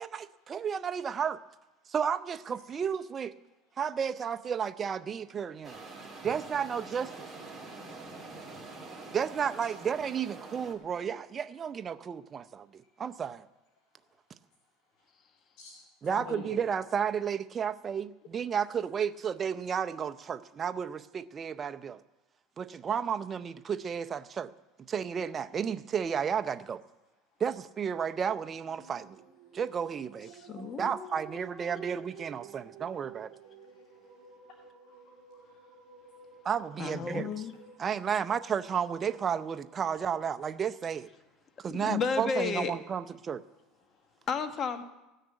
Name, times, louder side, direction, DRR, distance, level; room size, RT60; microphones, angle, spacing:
voice 1, 0.0-1.4 1.9-3.3 3.8-5.8 6.2-7.3 9.1-13.4 16.0-22.0 22.6-24.5 24.9-26.8 27.4-29.2 29.5-30.3 30.8-33.3 36.4-37.3 37.8-41.1 41.6-43.4, right 7 dB, 30° right, 11 dB, 0.6 m, -32 dB
sound 1, 5.6-10.7, right 3 dB, ahead, 2.6 m, -45 dB
voice 2, 16.1-16.7 33.6-34.1 34.9-35.7, left 4 dB, 65° left, 0 dB, 2.4 m, -47 dB
sound 2, 28.5-39.9, right 6 dB, 45° right, 1.6 m, -54 dB
voice 3, 30.3-32.0 36.8-37.5 41.7-42.7 44.3-44.8, left 5 dB, 35° left, 8 dB, 1.2 m, -33 dB
16.0 x 6.6 x 9.0 m, 1.0 s
supercardioid pair, 120°, 0 cm